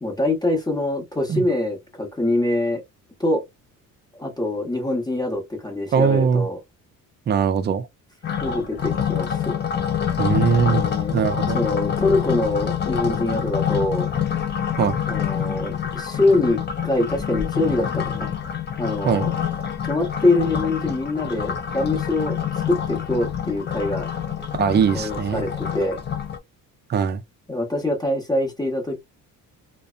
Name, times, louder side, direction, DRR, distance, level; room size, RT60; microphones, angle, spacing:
voice 1, 0.0-2.8 3.2-3.4 4.1-6.6 8.4-9.6 10.6-11.2 11.5-14.1 15.1-18.3 18.8-19.3 19.8-22.4 22.7-24.1 24.9-26.0 27.5-29.0, left 2 dB, 10° left, 0.9 m, -24 dB
voice 2, 5.9-6.5 7.3-7.9 10.2-10.8 11.1-11.6 14.8-15.0 19.0-19.3 24.5-25.5 26.9-27.2, right 7 dB, 30° right, 0.4 m, -21 dB
sound 1, 8.2-26.4, left 8 dB, 30° left, 0.4 m, -26 dB
2.6 x 2.1 x 2.4 m
cardioid pair, 125°, 35 cm